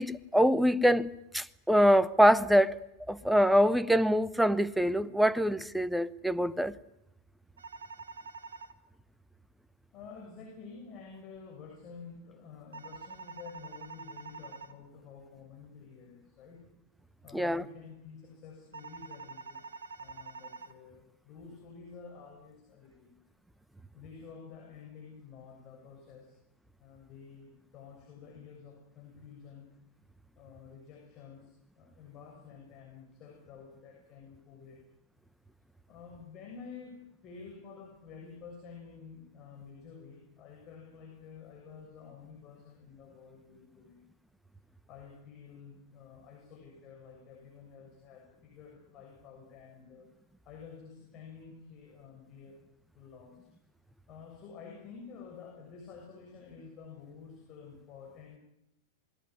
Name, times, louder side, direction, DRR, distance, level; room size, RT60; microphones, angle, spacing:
voice 1, 0.0-2.8 3.1-6.7 17.3-17.6, equal, ahead, 1.0 m, -24 dB
sound 1, 7.6-8.7 12.7-14.7 18.7-20.7, right 4 dB, 70° right, 1.8 m, -46 dB
voice 2, 9.9-16.6 17.2-19.7 20.0-23.1 23.9-26.3 26.8-29.7 30.4-34.8 35.9-44.0 44.9-50.1 50.4-52.6 52.9-53.4 54.1-58.4, left 5 dB, 35° left, 6.8 m, -50 dB
27.5 x 20.0 x 9.8 m
figure-of-eight pair, 90°, 0 cm